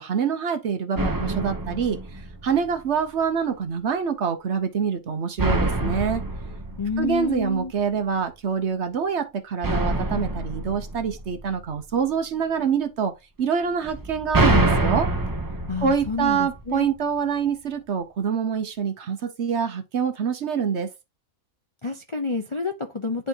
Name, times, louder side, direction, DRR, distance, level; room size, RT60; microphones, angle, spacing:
voice 1, 0.0-6.2 7.0-13.1 13.4-15.1 15.8-20.9, right 6 dB, 55° right, 1.0 m, -26 dB
sound 1, 1.0-2.8 5.4-7.8 9.6-11.9 13.9-16.9, right 2 dB, 20° right, 0.5 m, -26 dB
voice 2, 6.8-7.7 15.7-16.9 21.8-23.3, left 3 dB, 35° left, 0.5 m, -28 dB
10.0 x 3.4 x 2.8 m
omnidirectional pair, 1.5 m